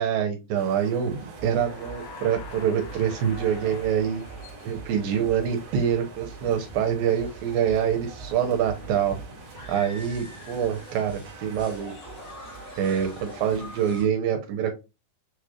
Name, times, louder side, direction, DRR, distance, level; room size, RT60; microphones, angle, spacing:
voice 1, 0.0-4.2 4.7-9.2 9.7-11.9 12.8-14.7, right 8 dB, 75° right, 4 dB, 2.4 m, -25 dB
sound 1, 0.5-14.0, right 4 dB, 55° right, 2.2 m, -46 dB
sound 2, 1.1-14.1, right 2 dB, 55° left, 1.3 m, -44 dB
sound 3, 1.5-5.4, left 7 dB, 85° left, 2.6 m, -47 dB
6.7 x 3.2 x 2.4 m, 0.26 s
omnidirectional pair, 4.4 m